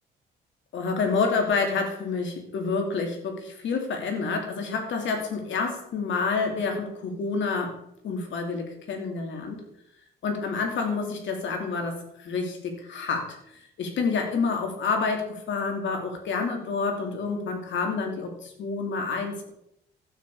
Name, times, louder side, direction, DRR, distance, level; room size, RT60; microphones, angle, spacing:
voice 1, 0.7-7.8 8.0-9.6 10.2-19.5, left 4 dB, 70° left, 4 dB, 2.9 m, -28 dB
12.0 x 9.1 x 4.9 m, 0.76 s
cardioid pair, 90°, 20 cm